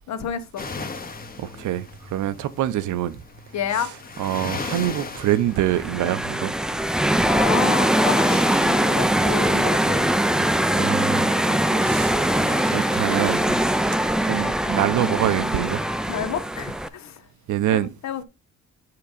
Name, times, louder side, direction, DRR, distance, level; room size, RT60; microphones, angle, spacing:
voice 1, 0.1-0.6 3.5-3.9 7.3-8.4 8.6-10.5 11.5-12.0 16.1-17.1 17.7-18.2, left 8 dB, 65° left, 0.9 m, -30 dB
sound 1, 0.6-16.5, left 4 dB, 30° left, 1.1 m, -39 dB
voice 2, 1.4-3.2 3.7-6.5 10.7-12.2 12.7-13.4 14.2-15.8 17.5-17.9, right 13 dB, 75° right, 0.7 m, -25 dB
sound 2, 5.6-16.9, right 1 dB, ahead, 0.4 m, -22 dB
5.8 x 3.7 x 5.1 m
cardioid pair, 90°, 30 cm